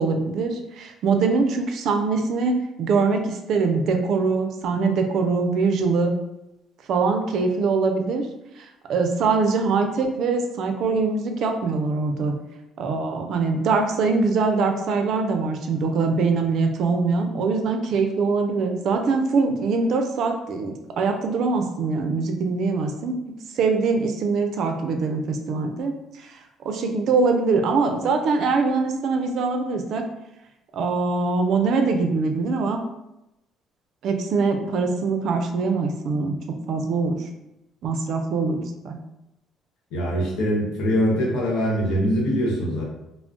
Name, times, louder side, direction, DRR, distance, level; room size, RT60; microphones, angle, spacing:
voice 1, 0.0-6.1 6.9-8.3 8.6-12.3 12.8-23.2 23.5-26.4 26.6-30.1 30.7-32.8 34.0-37.3 37.8-39.0, right 4 dB, 65° right, 5 dB, 0.4 m, -23 dB
voice 2, 39.9-42.8, equal, 80° left, -2 dB, 0.9 m, -23 dB
2.3 x 2.0 x 3.7 m, 0.89 s
supercardioid pair, 85°, 0 cm